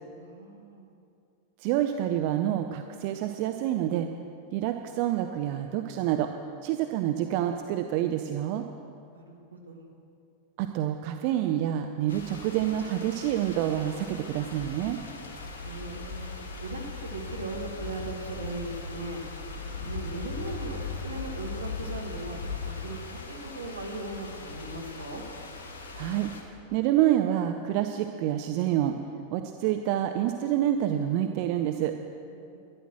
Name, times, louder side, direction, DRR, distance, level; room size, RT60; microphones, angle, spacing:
voice 1, 0.2-0.9 9.1-9.9 15.6-16.3 16.6-19.2 19.8-22.4 22.7-23.0 23.3-25.2 32.3-32.6, right 2 dB, 75° right, 0 dB, 1.9 m, -38 dB
voice 2, 1.6-4.1 4.5-6.3 6.6-8.6 10.6-15.0 25.9-26.3 26.7-29.0 29.3-31.9, right 12 dB, 45° right, 6 dB, 0.6 m, -27 dB
sound 1, 12.1-26.4, left 4 dB, 65° left, 1.8 m, -39 dB
13.0 x 11.0 x 6.2 m, 2.5 s
figure-of-eight pair, 90°, 0 cm